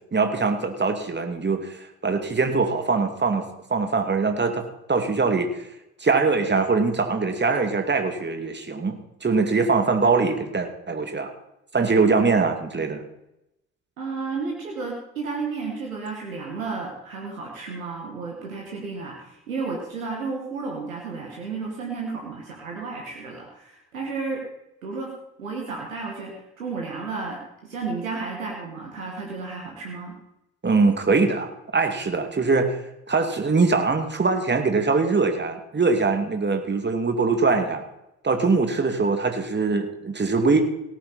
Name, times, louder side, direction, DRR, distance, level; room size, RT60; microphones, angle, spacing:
voice 1, 0.1-4.6 4.9-5.6 6.0-11.3 11.7-13.0 30.6-32.8 33.1-37.8 38.2-40.6, right 4 dB, 25° right, 6 dB, 2.4 m, -22 dB
voice 2, 14.0-24.4 24.8-25.1 25.4-30.2, right 4 dB, 85° right, -1 dB, 2.0 m, -32 dB
17.5 x 10.0 x 4.2 m, 0.87 s
figure-of-eight pair, 45°, 40 cm